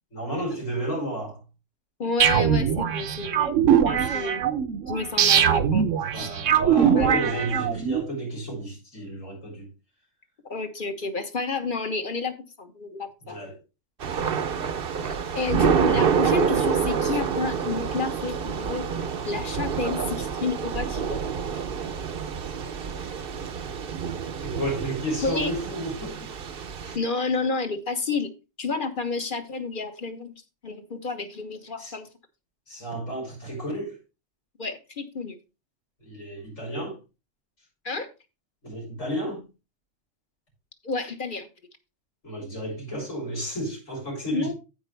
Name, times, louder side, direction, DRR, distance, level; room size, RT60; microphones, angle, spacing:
voice 1, 0.1-1.4 3.9-4.3 6.1-9.7 13.2-13.6 14.1-14.2 24.4-26.3 26.8-27.0 31.8-31.9 32.7-34.0 36.0-37.0 38.6-39.4 42.2-44.5, right 1 dB, 90° left, 6.0 m, -32 dB
voice 2, 2.0-3.5 3.8-4.5 4.9-5.8 6.1-6.3 6.8-7.4 10.5-13.3 15.0-18.8 19.2-21.2 25.2-25.5 26.9-28.3 28.6-30.3 30.6-32.1 34.6-35.4 37.8-38.1 40.8-41.5 44.3-44.5, left 4 dB, 40° left, 1.4 m, -30 dB
sound 1, 2.2-8.0, right 8 dB, 80° right, 1.2 m, -22 dB
Thunder / Rain, 14.0-27.0, right 7 dB, 50° right, 0.9 m, -27 dB
15.0 x 5.2 x 3.3 m
omnidirectional pair, 1.3 m